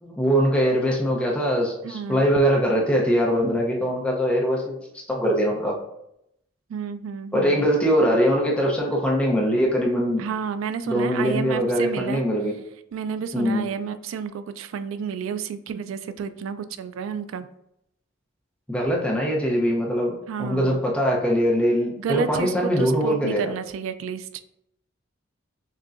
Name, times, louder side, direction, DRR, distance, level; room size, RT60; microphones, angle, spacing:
voice 1, 0.0-4.8 5.1-5.8 7.3-10.2 10.9-12.5 13.3-13.7 18.7-23.5, equal, 5° left, -2 dB, 0.7 m, -22 dB
voice 2, 1.8-2.2 6.7-7.7 10.2-12.2 12.9-17.5 20.3-20.8 22.0-24.4, right 6 dB, 85° right, 12 dB, 0.3 m, -30 dB
6.2 x 2.2 x 2.5 m, 0.79 s
head